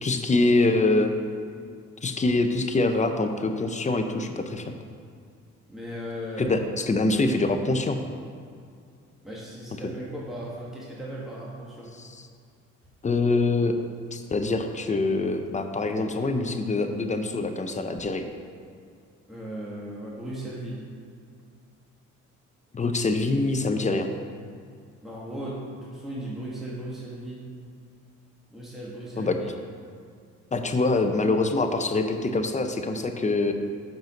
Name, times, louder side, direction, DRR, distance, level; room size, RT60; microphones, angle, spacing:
voice 1, 0.0-1.1 2.0-4.7 6.4-8.0 12.0-12.2 13.0-13.7 14.1-18.2 22.7-24.1 29.2-29.4 30.5-33.5, left 2 dB, 25° left, 6 dB, 0.6 m, -24 dB
voice 2, 5.7-6.5 9.2-11.9 19.3-20.8 25.0-27.4 28.5-29.3, right 1 dB, ahead, -7 dB, 1.4 m, -36 dB
5.9 x 5.4 x 5.2 m, 2.3 s
cardioid pair, 90°, 30 cm